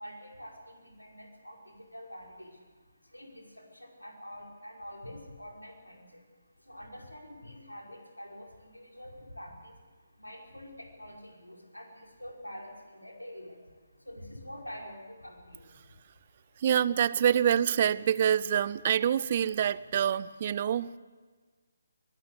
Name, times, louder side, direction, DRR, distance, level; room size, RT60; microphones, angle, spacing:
voice 1, 0.0-2.5 3.1-6.2 6.7-9.8 10.2-13.6 14.1-15.6, equal, 85° left, 2 dB, 5.2 m, -46 dB
voice 2, 16.6-20.9, right 9 dB, 35° right, 20 dB, 0.6 m, -26 dB
22.5 x 18.5 x 8.2 m, 1.4 s
figure-of-eight pair, 145°, 0 cm